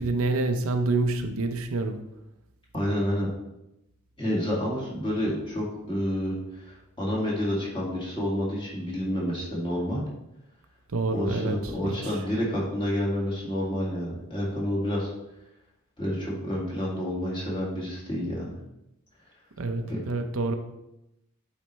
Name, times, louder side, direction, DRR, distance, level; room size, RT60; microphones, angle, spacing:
voice 1, 0.0-2.0 10.9-11.6 11.8-12.0 19.6-20.5, right 3 dB, 75° right, 6 dB, 0.6 m, -27 dB
voice 2, 2.7-3.3 4.2-10.0 11.1-15.1 16.0-18.5 19.9-20.0, equal, 25° left, -5 dB, 1.9 m, -29 dB
8.7 x 4.2 x 3.2 m, 0.89 s
head